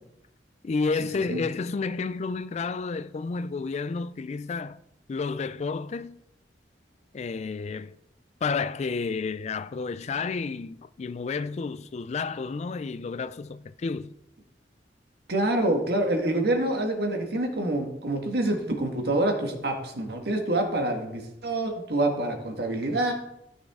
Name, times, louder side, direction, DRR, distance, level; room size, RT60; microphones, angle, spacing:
voice 1, 0.6-4.8 5.1-6.2 7.1-8.0 8.4-14.1, left 4 dB, 40° left, 0.3 m, -31 dB
voice 2, 15.3-23.1, right 1 dB, 65° right, 1.7 m, -26 dB
13.5 x 6.2 x 3.7 m
head